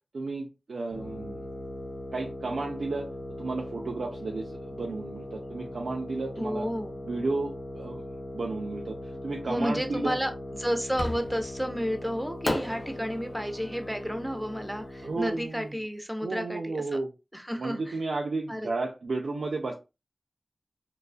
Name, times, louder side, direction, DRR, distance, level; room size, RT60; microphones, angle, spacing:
voice 1, 0.1-1.5 2.1-3.1 3.4-6.6 7.0-8.0 8.3-10.2 15.0-15.7 16.2-17.1 17.6-19.7, right 3 dB, 85° right, 0 dB, 0.3 m, -33 dB
sound 1, 0.9-15.5, left 1 dB, 85° left, 1.3 m, -40 dB
voice 2, 6.4-6.9 9.5-10.3 10.6-17.0 17.3-17.9 18.5-18.7, equal, 5° right, 6 dB, 0.5 m, -31 dB
Fireworks, 11.0-11.6 12.4-15.6, left 1 dB, 50° left, 0.6 m, -36 dB
2.3 x 2.3 x 2.3 m, 0.28 s
cardioid pair, 40°, 0 cm